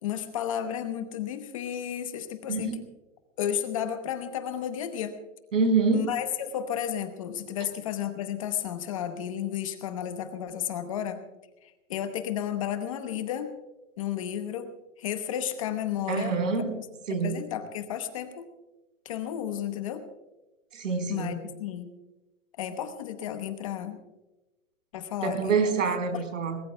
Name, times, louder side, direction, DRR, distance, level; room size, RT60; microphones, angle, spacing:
voice 1, 0.0-2.8 3.4-5.2 5.9-11.2 11.6-13.5 14.0-14.7 15.0-16.9 17.2-18.4 19.0-20.0 21.1-21.9 22.6-24.0 24.9-25.5 26.1-26.2, left 10 dB, 25° left, 8 dB, 0.9 m, -32 dB
voice 2, 5.5-6.1 16.1-16.8 17.1-17.3 20.7-21.3 25.2-26.6, right 5 dB, 90° right, 6 dB, 4.4 m, -26 dB
22.0 x 20.0 x 2.2 m, 1.1 s
hypercardioid pair, 180°, 37 cm